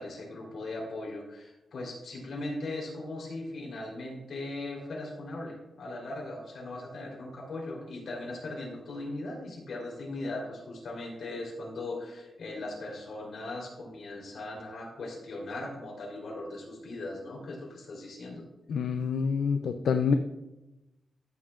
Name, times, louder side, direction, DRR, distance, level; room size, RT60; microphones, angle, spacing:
voice 1, 0.0-18.4, left 2 dB, 65° left, -3 dB, 3.5 m, -39 dB
voice 2, 18.7-20.1, left 6 dB, 85° left, 7 dB, 0.4 m, -27 dB
14.0 x 7.2 x 2.5 m, 0.99 s
wide cardioid pair, 165°, 0 cm